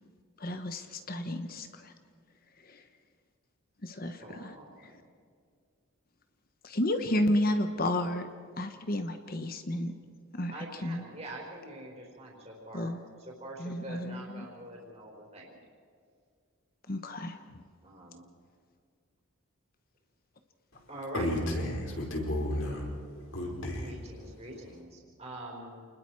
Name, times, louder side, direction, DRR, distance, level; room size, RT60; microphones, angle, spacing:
voice 1, 0.4-1.9 2.6-2.8 3.8-4.5 4.8-4.9 6.6-8.3 8.6-9.9 10.3-11.0 12.7-13.0 13.6-14.5 16.9-17.6, left 1 dB, 45° left, 7 dB, 1.2 m, -32 dB
voice 2, 4.2-5.1 10.5-12.9 13.2-15.6 17.8-18.3 20.9-21.3 23.8-25.9, right 1 dB, 30° right, -3 dB, 4.6 m, -45 dB
voice 3, 21.1-22.9 23.3-23.9, left 1 dB, 70° left, 0 dB, 5.0 m, -32 dB
29.0 x 21.0 x 4.8 m, 2.2 s
head